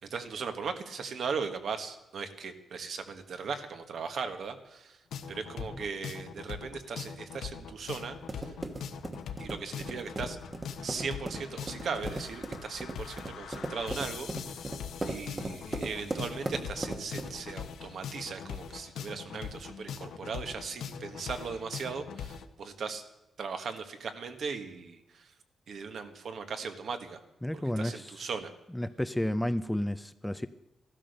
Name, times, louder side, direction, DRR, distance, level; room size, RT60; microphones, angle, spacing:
voice 1, 0.0-5.0 5.3-8.5 9.4-10.4 10.8-14.8 15.1-23.0 23.4-25.3 25.7-27.2 27.5-28.5, right 5 dB, 60° right, 8 dB, 1.5 m, -38 dB
sound 1, 5.1-22.4, left 7 dB, 85° left, 1.1 m, -42 dB
sound 2, 7.7-17.5, right 2 dB, 20° right, 1.2 m, -39 dB
voice 2, 27.4-28.1 28.7-30.5, left 1 dB, 5° left, 12 dB, 0.4 m, -31 dB
15.0 x 12.5 x 6.7 m, 0.92 s
wide cardioid pair, 140°, 0 cm